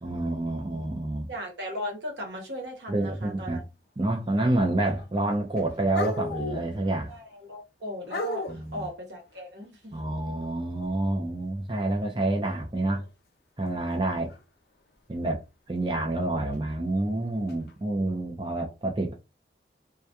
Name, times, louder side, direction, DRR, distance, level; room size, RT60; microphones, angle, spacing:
voice 1, 0.0-1.3 2.9-3.6 4.0-7.1 8.5-8.9 9.9-13.0 13.6-14.3 15.1-15.4 15.7-19.1, right 2 dB, 25° right, 0.4 m, -28 dB
voice 2, 1.3-3.6 4.5-4.7 7.1-9.9, equal, 80° right, 0.9 m, -37 dB
sound 1, 4.6-5.0 5.3-7.1 8.1-8.7 12.8-13.1 14.3-14.4 16.5-16.6 17.5-17.7, left 2 dB, 60° left, 0.4 m, -34 dB
2.2 x 2.2 x 2.7 m
head